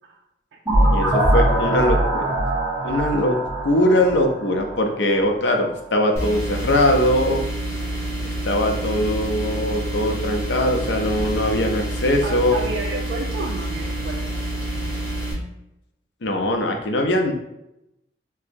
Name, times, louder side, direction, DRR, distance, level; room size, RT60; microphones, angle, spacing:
sound 1, 0.6-5.3, right 1 dB, 5° right, 1.3 m, -22 dB
voice 1, 0.9-2.4 2.8-7.4 8.2-12.6 16.2-17.3, left 1 dB, 80° left, 3 dB, 0.5 m, -21 dB
sound 2, 6.2-15.3, right 1 dB, 15° left, 0.9 m, -28 dB
voice 2, 12.2-14.4, right 3 dB, 80° right, 0 dB, 0.3 m, -31 dB
4.3 x 2.0 x 2.6 m, 0.88 s
head